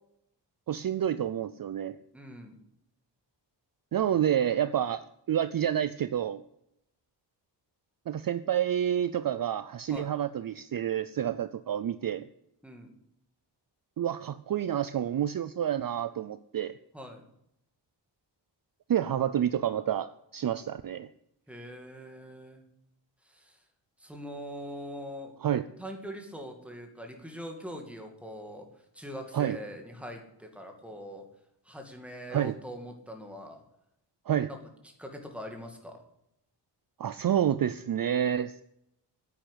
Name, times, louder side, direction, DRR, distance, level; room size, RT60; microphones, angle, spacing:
voice 1, 0.7-2.0 3.9-6.4 8.1-12.3 14.0-16.7 18.9-21.1 25.4-25.7 29.3-29.6 32.3-32.5 34.3-34.5 37.0-38.6, right 10 dB, 50° right, 14 dB, 0.5 m, -29 dB
voice 2, 2.1-2.6 9.9-10.1 12.6-13.0 16.9-17.2 21.5-22.6 23.3-23.6 24.0-25.3 25.8-28.7 28.9-31.3 31.7-33.6 34.5-34.6 34.8-36.0, equal, 5° right, 3 dB, 2.3 m, -42 dB
10.0 x 9.2 x 10.0 m, 0.79 s
wide cardioid pair, 160°, 44 cm